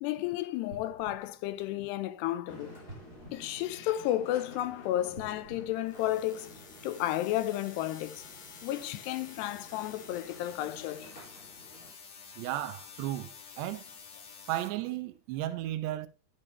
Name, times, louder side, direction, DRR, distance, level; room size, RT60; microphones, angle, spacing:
voice 1, 0.0-2.8 3.3-6.5 6.8-8.2 8.6-11.1, left 14 dB, 85° left, 2.9 m, -32 dB
sound 1, 0.6-2.3 2.8-4.4 5.0-6.7 7.3-7.4, right 1 dB, 20° right, 1.5 m, -52 dB
sound 2, 2.5-11.9, equal, 25° left, 3.7 m, -52 dB
sound 3, 5.9-14.7, left 6 dB, 55° left, 3.0 m, -50 dB
voice 2, 12.4-13.8 14.5-16.1, right 14 dB, 85° right, 3.0 m, -34 dB
11.0 x 8.6 x 2.7 m
omnidirectional pair, 4.8 m